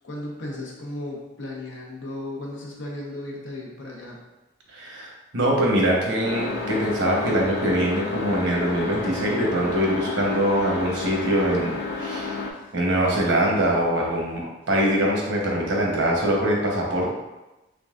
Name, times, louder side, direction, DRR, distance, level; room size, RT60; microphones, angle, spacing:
voice 1, 0.0-4.2, left 1 dB, 85° left, -2 dB, 0.9 m, -35 dB
voice 2, 4.7-12.4 12.7-17.1, right 1 dB, 90° right, -2 dB, 1.0 m, -23 dB
sound 1, 6.2-12.5, left 3 dB, 60° left, 0.5 m, -31 dB
3.8 x 3.3 x 2.5 m, 1.0 s
head